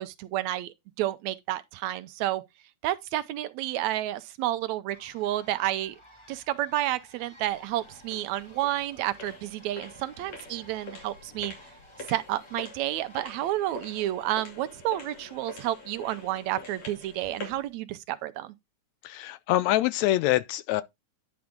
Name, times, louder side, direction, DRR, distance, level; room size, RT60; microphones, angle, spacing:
voice 1, 0.0-2.4 2.8-6.0 6.3-11.5 12.1-18.5, right 14 dB, 80° right, 1.9 m, -30 dB
sound 1, 4.9-14.1, left 1 dB, 15° left, 0.9 m, -55 dB
sound 2, 7.4-17.7, left 3 dB, 65° left, 3.8 m, -45 dB
voice 2, 19.0-20.8, left 15 dB, 80° left, 1.8 m, -25 dB
10.5 x 4.9 x 3.6 m
omnidirectional pair, 3.4 m